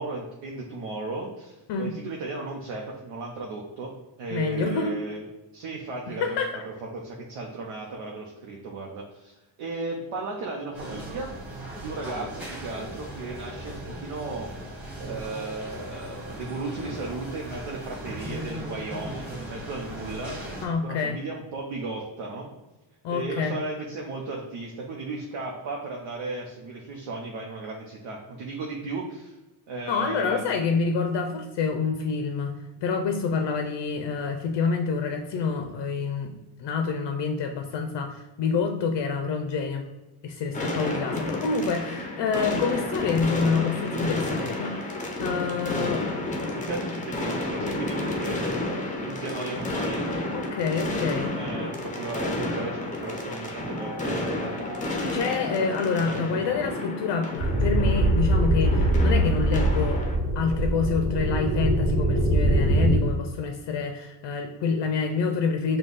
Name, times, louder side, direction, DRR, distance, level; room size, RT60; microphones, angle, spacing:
voice 1, 0.0-3.9 4.2-5.2 5.5-11.3 11.8-14.5 15.0-20.4 20.8-22.6 23.1-29.4 29.7-30.6 46.5-48.4 49.0-50.1 51.3-54.8 56.0-56.6, right 3 dB, 75° right, -1 dB, 0.9 m, -35 dB
voice 2, 4.3-4.9 6.1-6.5 20.6-21.2 23.0-23.6 29.9-39.9 40.2-46.1 50.3-51.4 55.1-60.0 60.4-65.8, left 5 dB, 60° left, 5 dB, 0.5 m, -27 dB
sound 1, 10.7-20.7, equal, 5° right, 1.1 m, -38 dB
sound 2, 40.5-60.2, left 2 dB, 15° left, 0.5 m, -31 dB
sound 3, 57.4-63.0, right 1 dB, 25° right, 1.5 m, -22 dB
5.2 x 2.3 x 3.9 m, 1.1 s
cardioid pair, 145°, 48 cm